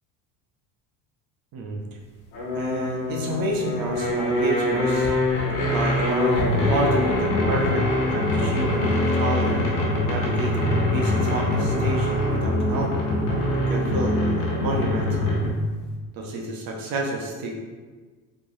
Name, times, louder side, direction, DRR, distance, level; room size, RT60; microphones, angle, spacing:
sound 1, 2.3-15.7, left 1 dB, 75° left, 1.1 m, -23 dB
voice 1, 2.5-5.1 5.7-6.4 6.7-12.9 13.7-14.2 14.6-15.3 16.1-17.5, right 2 dB, 55° right, 0 dB, 0.7 m, -30 dB
3.5 x 3.1 x 2.6 m, 1.4 s
supercardioid pair, 85°, 44 cm